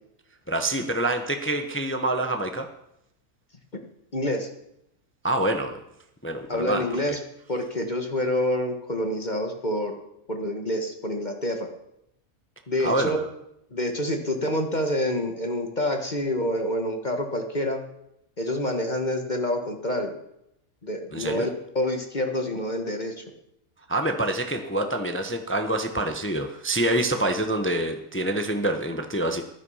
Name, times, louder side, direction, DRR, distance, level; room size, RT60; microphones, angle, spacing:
voice 1, 0.5-2.7 5.2-5.8 6.2-6.8 12.8-13.3 21.1-21.5 23.9-29.4, right 1 dB, 10° left, 6 dB, 1.0 m, -26 dB
voice 2, 4.1-4.5 6.5-7.2 7.5-10.0 10.3-11.7 12.7-13.2 13.7-17.8 18.4-20.1 20.8-21.5 21.8-23.2, left 1 dB, 30° left, 4 dB, 1.6 m, -27 dB
14.5 x 12.0 x 5.7 m, 0.79 s
omnidirectional pair, 1.6 m